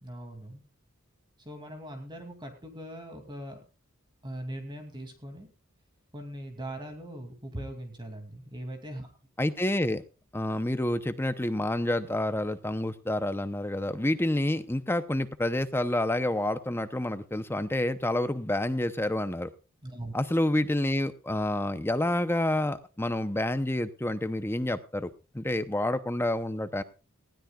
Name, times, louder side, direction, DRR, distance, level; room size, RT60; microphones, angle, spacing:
voice 1, 0.0-0.6 1.4-3.6 4.2-5.5 6.1-9.1 19.8-20.1, right 1 dB, 20° right, 4 dB, 2.6 m, -40 dB
voice 2, 9.4-10.0 10.3-19.5 20.1-25.1 25.3-26.8, left 1 dB, 10° left, 11 dB, 0.7 m, -28 dB
19.5 x 16.0 x 2.4 m, 0.32 s
head